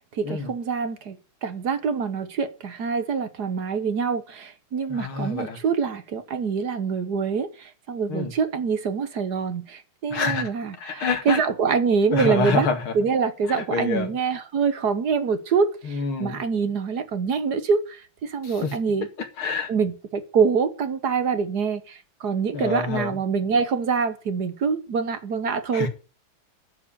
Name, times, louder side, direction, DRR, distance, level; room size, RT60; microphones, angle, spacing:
voice 1, 0.1-1.2 1.4-12.7 12.9-19.1 19.7-25.9, right 5 dB, 55° right, 1.6 m, -25 dB
voice 2, 4.9-5.6 8.1-8.3 10.1-10.5 10.8-11.5 12.1-12.9 13.5-14.1 15.8-16.4 18.4-18.8 19.2-19.7 22.5-23.2 25.7-25.9, left 4 dB, 90° left, 2.9 m, -27 dB
11.0 x 7.8 x 8.7 m
omnidirectional pair, 2.3 m